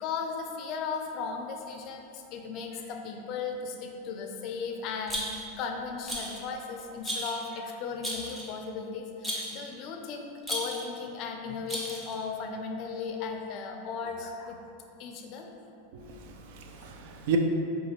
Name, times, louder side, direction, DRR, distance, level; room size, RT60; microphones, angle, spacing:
voice 1, 0.0-14.6 15.0-15.6, left 5 dB, 50° left, 3 dB, 0.4 m, -36 dB
Rattle, 5.1-5.6 6.1-6.4 7.0-7.4 8.0-8.6 9.2-9.6 10.4-10.9 11.7-12.2, equal, 10° right, 0.7 m, -35 dB
voice 2, 15.9-17.4, right 9 dB, 65° right, 4 dB, 0.4 m, -33 dB
4.9 x 2.3 x 3.0 m, 2.7 s
supercardioid pair, 120°, 0 cm